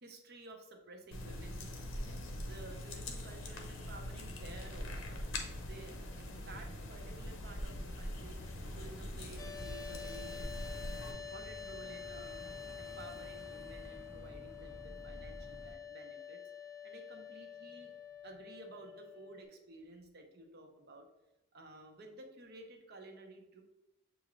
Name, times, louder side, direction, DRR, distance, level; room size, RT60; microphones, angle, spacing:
voice 1, 0.0-5.2 5.6-8.4 8.7-10.4 10.8-12.5 12.8-16.4 16.8-17.9 18.2-21.1 21.5-23.6, right 2 dB, 50° right, 3 dB, 0.7 m, -53 dB
sound 1, 1.1-11.1, left 1 dB, 60° left, 0.7 m, -43 dB
sound 2, 8.1-15.8, equal, ahead, 0.8 m, -51 dB
sound 3, 9.4-19.4, left 7 dB, 15° left, 0.3 m, -48 dB
6.9 x 2.4 x 3.1 m, 0.98 s
head